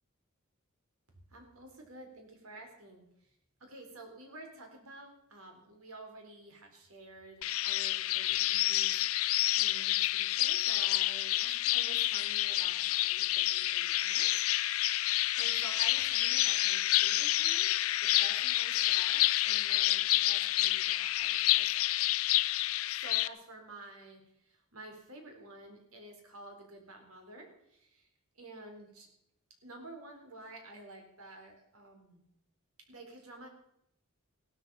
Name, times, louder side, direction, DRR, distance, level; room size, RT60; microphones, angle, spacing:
voice 1, 1.3-3.3 3.6-9.2 9.5-17.7 18.0-21.9 22.8-28.1 28.3-29.1 29.6-32.2 32.9-33.5, right 2 dB, 80° right, 3 dB, 4.2 m, -51 dB
sound 1, 7.4-23.3, left 15 dB, 70° left, 0.5 m, -29 dB
16.5 x 12.5 x 5.6 m, 0.77 s
head